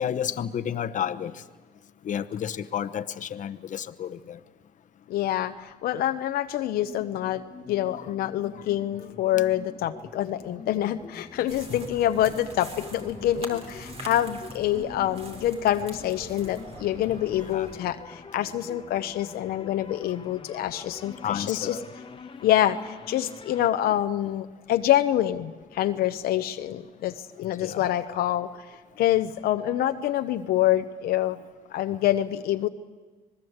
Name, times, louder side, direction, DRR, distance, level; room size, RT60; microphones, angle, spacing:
voice 1, 0.0-1.3 2.0-4.4 7.9-8.1 8.5-8.6 11.7-11.8 17.5-17.7 21.2-21.8 27.6-27.9, left 9 dB, 55° left, 11 dB, 1.0 m, -31 dB
voice 2, 5.1-21.8 22.4-31.4 31.7-32.7, left 12 dB, 80° left, 8 dB, 0.8 m, -26 dB
sound 1, 6.8-23.7, left 5 dB, 35° left, 1.3 m, -45 dB
sound 2, 11.5-17.8, right 2 dB, 40° right, 4.1 m, -44 dB
26.0 x 20.0 x 8.0 m, 1.4 s
cardioid pair, 85°, 16 cm